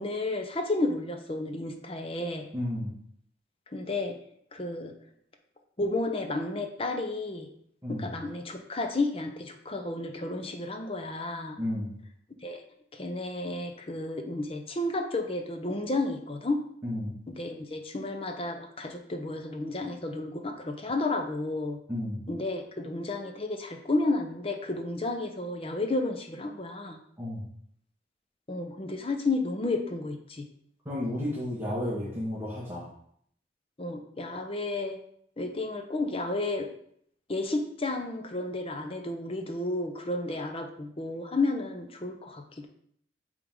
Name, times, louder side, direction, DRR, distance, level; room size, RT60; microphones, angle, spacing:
voice 1, 0.0-2.5 3.7-4.2 4.5-4.9 5.8-7.5 7.9-11.6 12.4-12.6 12.9-16.6 17.3-21.8 22.3-27.0 28.5-30.5 33.8-35.0 35.4-36.7 37.3-42.7, left 2 dB, 30° left, 5 dB, 0.7 m, -32 dB
voice 2, 2.5-2.9 7.8-8.0 11.6-11.9 16.8-17.1 21.9-22.2 27.2-27.4 30.8-32.9, left 1 dB, 15° right, -8 dB, 1.5 m, -32 dB
8.1 x 3.7 x 3.6 m, 0.67 s
head